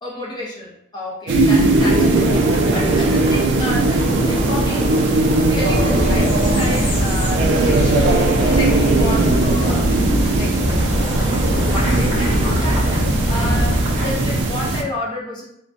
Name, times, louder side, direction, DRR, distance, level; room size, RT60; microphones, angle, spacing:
voice 1, 0.0-8.0 8.4-10.5 11.3-15.4, left 2 dB, 20° left, -4 dB, 0.5 m, -30 dB
sound 1, 1.3-14.8, right 2 dB, 65° right, 0.3 m, -19 dB
sound 2, 1.5-14.5, equal, 30° right, 0.7 m, -26 dB
sound 3, 5.6-13.8, equal, 65° left, 0.6 m, -23 dB
2.5 x 2.1 x 2.5 m, 0.75 s
head